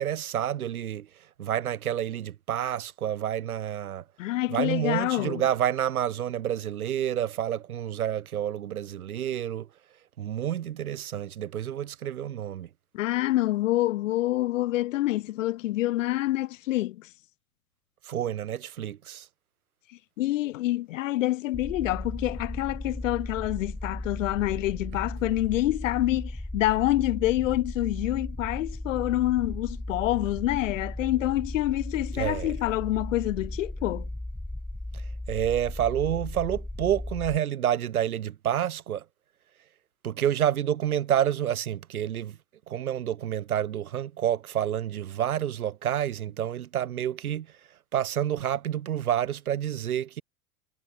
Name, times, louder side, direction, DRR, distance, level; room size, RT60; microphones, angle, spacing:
voice 1, 0.0-4.0 4.5-9.7 10.2-12.7 18.0-19.3 32.1-32.5 34.9-39.0 40.0-42.4 42.7-50.2, right 10 dB, 75° right, 0.9 m, -29 dB
voice 2, 4.2-5.4 12.9-17.1 20.2-34.1, left 16 dB, 60° left, 0.7 m, -27 dB
sound 1, 21.5-37.4, left 1 dB, 5° left, 1.0 m, -36 dB
figure-of-eight pair, 80°, 44 cm